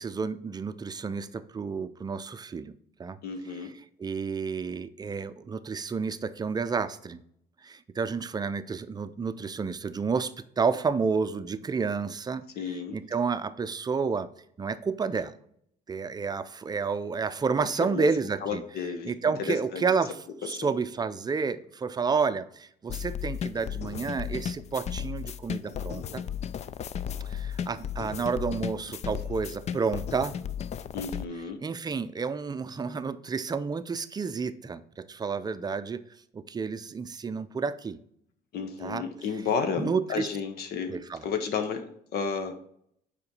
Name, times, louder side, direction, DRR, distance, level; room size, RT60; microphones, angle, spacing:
voice 1, 0.0-2.7 3.0-3.2 3.6-3.7 4.0-7.2 7.6-14.3 14.6-15.3 15.9-18.6 19.1-26.3 27.2-30.3 31.4-36.0 36.3-38.0 38.8-39.1 39.8-40.3 40.9-41.3, right 5 dB, 25° right, 13 dB, 0.5 m, -30 dB
voice 2, 3.2-3.7 12.6-13.0 17.9-18.1 18.4-19.8 20.4-20.7 30.9-31.6 38.5-41.0 41.2-42.5, left 6 dB, 70° left, 7 dB, 1.0 m, -32 dB
sound 1, 22.9-31.2, left 8 dB, 40° left, 0.4 m, -35 dB
6.9 x 5.0 x 5.3 m, 0.69 s
cardioid pair, 110°, 17 cm